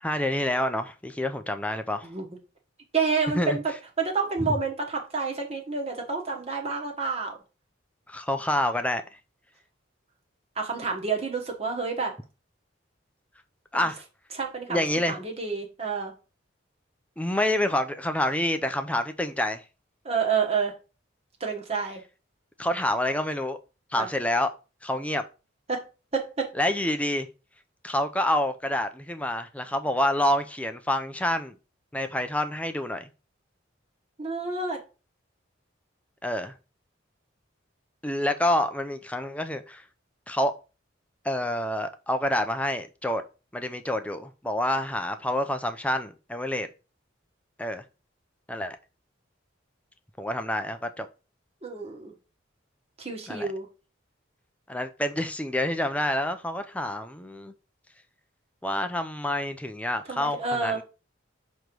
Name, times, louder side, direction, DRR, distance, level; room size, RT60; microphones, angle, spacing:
voice 1, 0.0-2.1 3.4-3.6 4.4-4.5 8.1-9.0 13.7-14.0 14.7-15.2 17.2-19.6 22.6-23.6 23.9-24.5 24.8-25.2 26.6-27.3 27.8-31.6 31.9-33.1 36.2-36.5 38.0-39.8 40.3-40.5 41.2-43.2 43.5-46.7 47.6-47.8 48.5-48.8 50.2-51.1 53.3-53.5 54.7-57.5 58.6-60.8, left 1 dB, 5° left, 0.5 m, -27 dB
voice 2, 2.9-3.6 4.0-7.4 10.5-12.1 13.7-13.9 14.3-16.1 20.0-20.7 21.4-22.0 24.0-24.1 25.7-25.8 26.1-26.5 34.2-34.8 51.6-52.1 53.0-53.7 60.1-60.8, right 5 dB, 30° right, 1.2 m, -29 dB
6.2 x 3.1 x 5.2 m
head